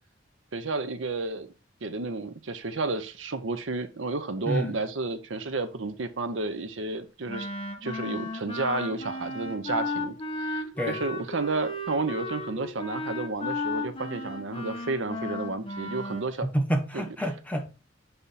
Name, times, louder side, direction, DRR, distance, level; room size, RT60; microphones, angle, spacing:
voice 1, 0.5-1.5 1.8-7.5 7.8-16.5 16.9-17.0, right 3 dB, 80° right, 0.8 m, -31 dB
Wind instrument woodwind instrument, 7.3-16.3, left 2 dB, 30° left, 1.1 m, -34 dB
voice 2, 16.4-17.7, right 1 dB, 10° left, 0.9 m, -28 dB
6.8 x 3.5 x 4.1 m
head